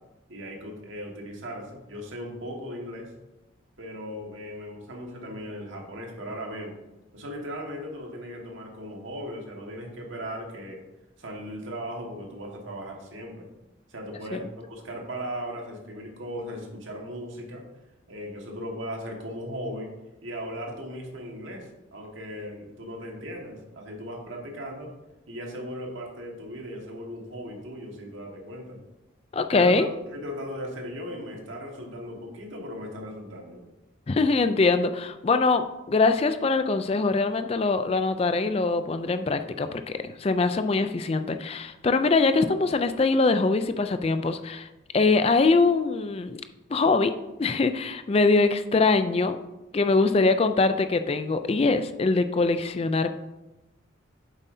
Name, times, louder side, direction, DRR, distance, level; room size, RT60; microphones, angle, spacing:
voice 1, 0.3-3.1 3.8-6.8 7.1-10.8 11.2-13.5 13.9-17.6 18.1-19.9 20.2-24.9 25.3-28.8 29.5-33.6, equal, 75° right, 0 dB, 1.6 m, -37 dB
voice 2, 29.3-29.9 34.1-44.7 44.9-46.4 46.7-47.1 47.4-49.4 49.7-53.1, left 3 dB, 30° left, 9 dB, 0.3 m, -23 dB
8.2 x 7.3 x 2.7 m, 0.99 s
head